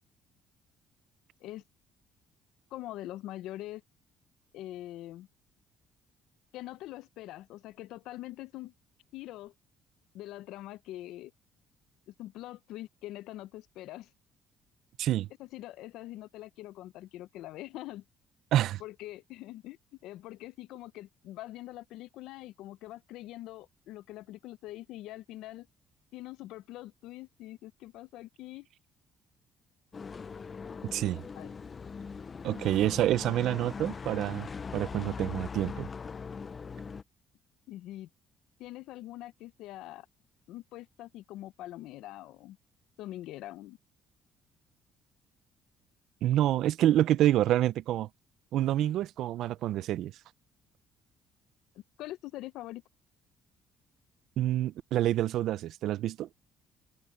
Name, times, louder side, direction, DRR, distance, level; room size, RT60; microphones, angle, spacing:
voice 1, 2.7-3.8 4.5-5.3 6.5-8.7 9.1-9.5 10.1-11.3 12.1-14.1 15.4-18.0 18.8-25.7 26.1-28.7 31.4-31.5 37.7-38.1 38.6-40.1 40.5-42.6 43.0-43.8 51.7-52.8, left 15 dB, 80° left, 0.6 m, -44 dB
voice 2, 18.5-18.8 30.9-31.2 32.4-34.5 34.7-35.9 46.2-48.1 48.5-50.1 54.4-56.3, right 13 dB, 75° right, 0.6 m, -27 dB
sound 1, 29.9-37.0, left 5 dB, 35° left, 0.5 m, -40 dB
cardioid pair, 90°, 0 cm